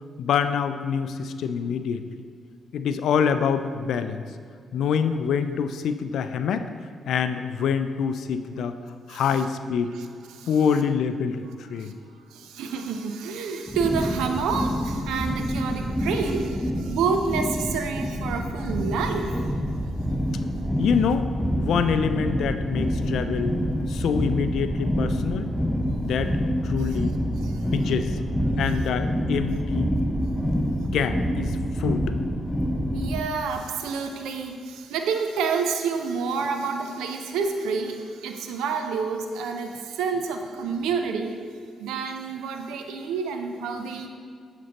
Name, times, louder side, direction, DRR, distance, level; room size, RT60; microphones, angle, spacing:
voice 1, 0.2-2.0 2.7-4.2 4.7-6.6 7.1-8.7 9.1-9.9 10.5-11.9 20.8-21.3 21.6-23.5 23.9-25.5 26.1-26.3 26.6-27.1 27.7-28.2 28.6-29.9 30.5-30.6 30.9-32.2, left 7 dB, 75° left, 10 dB, 0.3 m, -25 dB
voice 2, 9.9-10.5 11.7-11.9 12.3-19.4 27.4-27.7 32.9-41.4 41.8-44.1, right 5 dB, 85° right, 5 dB, 0.5 m, -29 dB
sound 1, 13.7-33.2, equal, 5° left, 0.7 m, -27 dB
7.5 x 5.3 x 2.9 m, 2.2 s
supercardioid pair, 55°, 0 cm